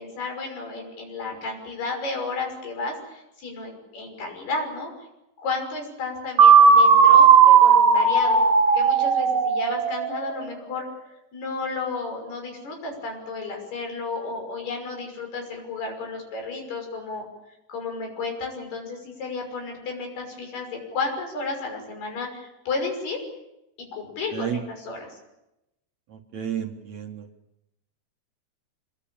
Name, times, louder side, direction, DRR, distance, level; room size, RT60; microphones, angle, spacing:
voice 1, 0.0-4.9 5.4-8.4 8.7-10.9 11.3-17.3 17.7-23.2 24.0-25.1, left 3 dB, 85° left, 3 dB, 8.2 m, -32 dB
sound 1, 6.4-10.2, right 6 dB, 40° right, 3.7 m, -15 dB
voice 2, 26.1-27.3, right 9 dB, 60° right, 4 dB, 2.2 m, -31 dB
26.0 x 22.0 x 8.8 m, 0.90 s
omnidirectional pair, 4.5 m